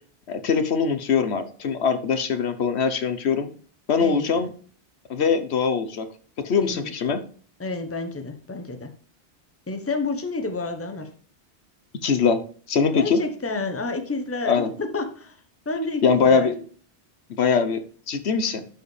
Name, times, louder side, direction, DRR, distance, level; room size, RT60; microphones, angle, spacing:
voice 1, 0.3-3.5 3.9-4.5 5.1-6.1 6.4-7.2 12.0-12.4 12.7-13.2 14.5-14.7 16.0-16.6 17.3-18.6, left 5 dB, 75° left, 9 dB, 1.2 m, -22 dB
voice 2, 6.6-6.9 7.6-8.9 9.7-11.1 12.9-15.4 15.7-16.5, left 3 dB, 15° left, 7 dB, 0.9 m, -29 dB
11.5 x 4.8 x 3.2 m, 0.44 s
omnidirectional pair, 1.1 m